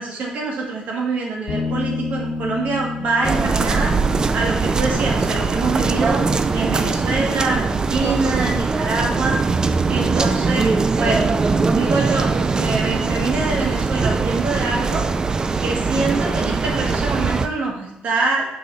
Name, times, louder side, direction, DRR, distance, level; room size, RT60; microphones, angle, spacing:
voice 1, 0.0-3.9 4.3-6.2 6.5-9.4 9.9-11.2 11.7-15.1 15.6-18.5, right 3 dB, 60° right, 0 dB, 1.6 m, -24 dB
sound 1, 1.5-11.0, left 4 dB, 80° left, 1.3 m, -33 dB
sound 2, 3.2-17.5, right 4 dB, 25° right, 0.4 m, -21 dB
5.7 x 3.8 x 5.4 m, 0.86 s
cardioid pair, 115°, 3 cm